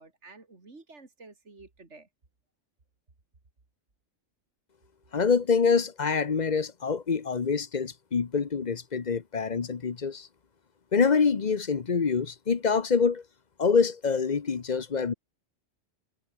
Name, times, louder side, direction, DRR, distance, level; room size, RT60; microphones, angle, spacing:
voice 1, 0.0-2.1, right 3 dB, 70° right, 3.5 m, -51 dB
voice 2, 5.1-10.3 10.9-13.2 13.6-15.1, left 5 dB, 40° left, 1.0 m, -25 dB
omnidirectional pair, 1.2 m